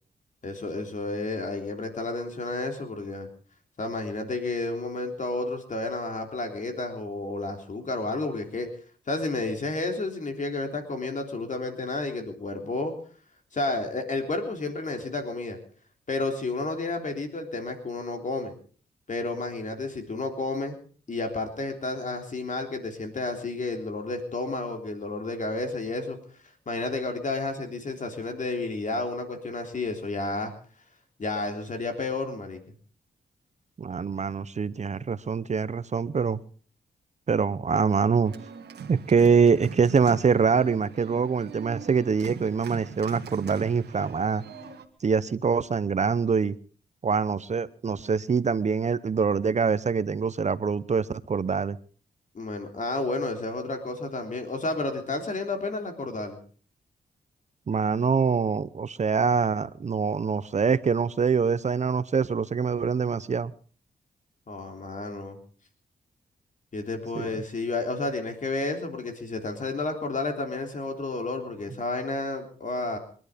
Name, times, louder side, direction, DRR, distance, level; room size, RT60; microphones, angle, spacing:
voice 1, 0.4-3.3 3.8-8.7 9.1-12.9 13.5-15.6 16.1-18.6 19.1-20.8 21.1-26.2 26.7-30.5 31.2-32.6 52.3-56.4 64.5-65.4 66.7-73.0, left 2 dB, 50° left, 3.5 m, -31 dB
voice 2, 33.8-36.4 37.3-38.3 38.9-44.4 45.0-46.6 47.0-51.8 57.7-63.5 67.1-67.4, right 5 dB, 45° right, 0.9 m, -24 dB
Organ, 38.2-44.9, right 7 dB, 85° right, 1.7 m, -42 dB
24.0 x 11.0 x 5.2 m
cardioid pair, 70°, 17 cm